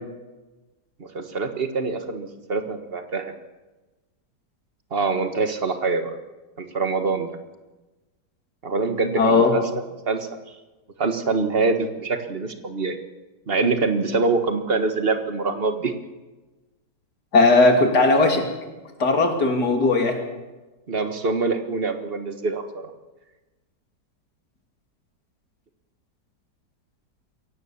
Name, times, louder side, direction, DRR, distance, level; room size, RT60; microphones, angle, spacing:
voice 1, 1.0-3.3 4.9-6.1 6.6-7.3 8.6-9.6 10.0-10.3 11.0-13.0 13.5-15.9 20.9-22.6, right 4 dB, 35° right, 7 dB, 1.6 m, -24 dB
voice 2, 9.2-9.5 17.3-18.4 19.0-20.2, left 3 dB, 65° left, 3 dB, 3.3 m, -17 dB
23.0 x 17.0 x 7.2 m, 1.2 s
omnidirectional pair, 1.9 m